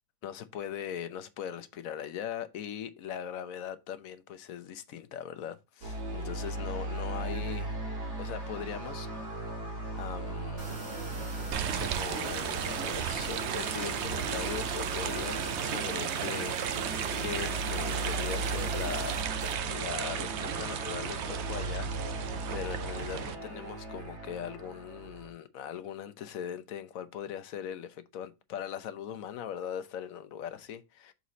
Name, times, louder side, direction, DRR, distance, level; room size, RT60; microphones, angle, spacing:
voice 1, 0.2-7.9 8.2-9.1 9.7-10.7 11.8-19.1 19.7-31.1, left 9 dB, 65° left, 1.0 m, -40 dB
sound 1, 5.8-25.3, right 2 dB, 70° right, 2.3 m, -38 dB
sound 2, 10.6-19.6, right 3 dB, 40° right, 1.7 m, -42 dB
sound 3, 11.5-23.3, right 9 dB, 85° right, 0.6 m, -35 dB
6.2 x 4.1 x 3.9 m
omnidirectional pair, 1.8 m